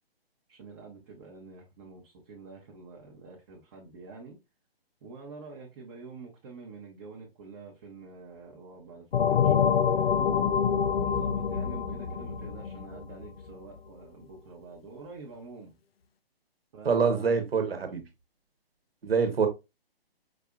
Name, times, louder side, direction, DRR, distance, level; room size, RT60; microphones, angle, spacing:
voice 1, 0.5-4.4 5.0-10.2 11.0-15.8 16.7-17.8, right 4 dB, 25° right, 0.8 m, -47 dB
sound 1, 9.1-13.5, left 7 dB, 75° left, 0.5 m, -26 dB
voice 2, 16.8-18.0 19.0-19.5, right 5 dB, 75° right, 1.1 m, -25 dB
4.9 x 2.7 x 2.3 m
figure-of-eight pair, 145°, 30 cm